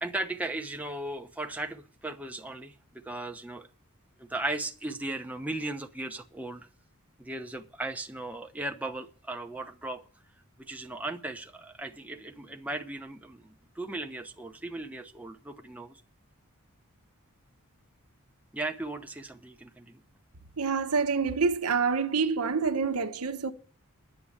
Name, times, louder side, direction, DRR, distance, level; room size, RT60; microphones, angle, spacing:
voice 1, 0.0-3.7 4.2-6.7 7.2-10.0 10.6-16.0 18.5-20.0, right 2 dB, 5° right, 0.9 m, -37 dB
voice 2, 20.6-23.5, right 5 dB, 85° right, 1.0 m, -27 dB
10.0 x 7.7 x 8.6 m
head